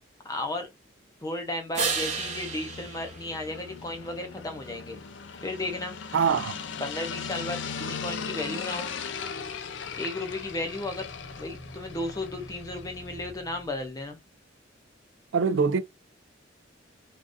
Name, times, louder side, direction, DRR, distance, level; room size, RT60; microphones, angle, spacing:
voice 1, 0.2-0.7 1.2-5.0 5.4-5.9 6.8-8.9 10.0-11.1 11.4-14.2, left 2 dB, 20° left, 0.6 m, -34 dB
sound 1, 1.7-13.3, left 6 dB, 70° left, 0.5 m, -38 dB
sound 2, 1.7-4.3 10.1-14.0, right 5 dB, 40° right, 0.7 m, -37 dB
voice 2, 6.1-6.5 15.3-15.8, right 6 dB, 80° right, 0.4 m, -23 dB
3.5 x 2.5 x 2.5 m
head